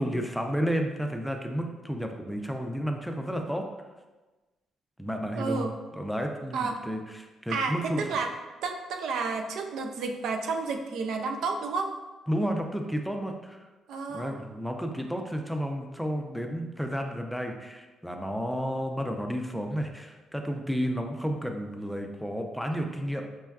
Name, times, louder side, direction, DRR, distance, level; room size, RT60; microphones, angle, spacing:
voice 1, 0.0-3.6 5.0-5.7 5.9-8.0 12.3-13.7 14.1-23.3, equal, ahead, 3 dB, 0.4 m, -31 dB
voice 2, 5.4-5.8 6.5-6.8 7.5-8.3 8.6-11.9 13.9-14.4, right 4 dB, 80° right, 4 dB, 0.3 m, -31 dB
5.2 x 2.2 x 2.3 m, 1.2 s
cardioid pair, 90°, 0 cm